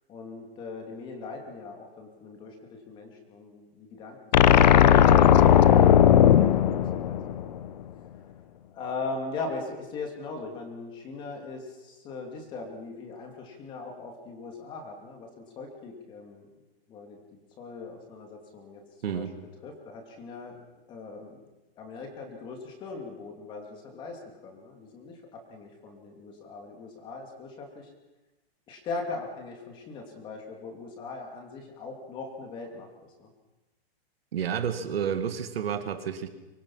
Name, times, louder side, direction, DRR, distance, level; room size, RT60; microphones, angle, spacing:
voice 1, 0.1-2.6 2.9-7.5 8.7-16.5 16.9-19.2 19.6-20.6 20.9-21.5 21.8-27.9 28.7-33.3, left 3 dB, 15° left, 3 dB, 2.6 m, -40 dB
sound 1, 4.3-7.7, left 10 dB, 45° left, 0.9 m, -17 dB
voice 2, 19.0-19.3 34.3-36.3, right 8 dB, 70° right, 8 dB, 2.2 m, -30 dB
24.5 x 22.0 x 5.7 m, 1.1 s
hypercardioid pair, 175°, 31 cm